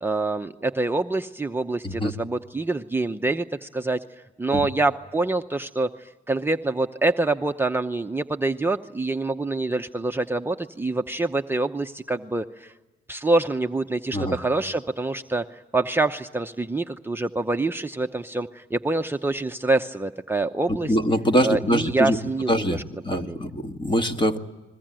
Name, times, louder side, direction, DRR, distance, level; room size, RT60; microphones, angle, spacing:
voice 1, 0.0-4.0 4.4-12.7 13.1-21.0 21.4-22.8 23.1-23.4, right 2 dB, 10° right, 4 dB, 0.8 m, -26 dB
voice 2, 20.9-22.2 22.5-24.4, equal, 25° left, 6 dB, 1.9 m, -23 dB
29.5 x 22.0 x 9.0 m, 1.2 s
cardioid pair, 90°, 20 cm